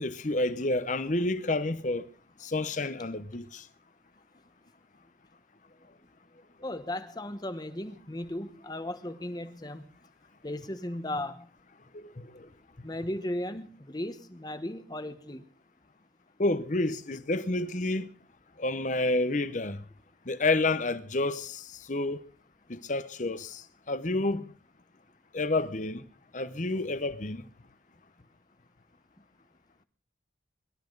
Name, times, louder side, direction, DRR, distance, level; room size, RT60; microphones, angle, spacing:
voice 1, 0.0-2.1 2.4-3.7 11.9-12.5 16.4-18.1 18.6-19.8 20.3-22.2 22.7-24.5 25.3-26.0 26.3-27.4, left 2 dB, 40° left, 0.9 m, -29 dB
voice 2, 6.6-9.8 10.4-11.5 12.8-15.4, left 1 dB, 20° left, 1.1 m, -36 dB
23.0 x 13.0 x 4.0 m
head